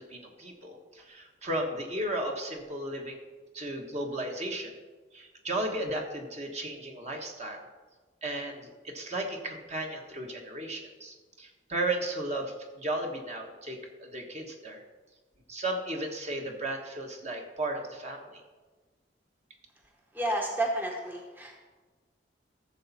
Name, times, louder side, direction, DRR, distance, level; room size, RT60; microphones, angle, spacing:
voice 1, 0.0-3.2 3.5-4.7 5.1-7.7 8.2-14.8 15.5-18.4, right 1 dB, 40° right, 2 dB, 1.4 m, -35 dB
voice 2, 20.1-21.6, right 1 dB, 10° right, 0 dB, 0.9 m, -31 dB
14.0 x 7.0 x 4.2 m, 1.3 s
head